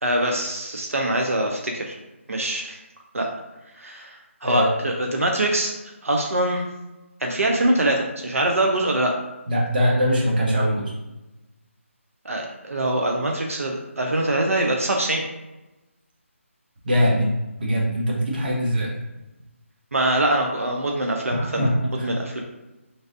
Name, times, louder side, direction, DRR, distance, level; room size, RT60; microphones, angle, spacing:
voice 1, 0.0-2.0 2.3-2.8 3.1-3.3 3.8-5.7 6.0-6.6 7.2-9.1 12.2-15.2 19.9-21.6 22.0-22.4, right 1 dB, 85° right, 1 dB, 0.5 m, -23 dB
voice 2, 4.4-4.9 9.5-10.9 16.8-18.9 21.3-22.1, equal, 40° right, -3 dB, 0.9 m, -22 dB
3.2 x 2.6 x 2.5 m, 1.0 s
figure-of-eight pair, 160°, 7 cm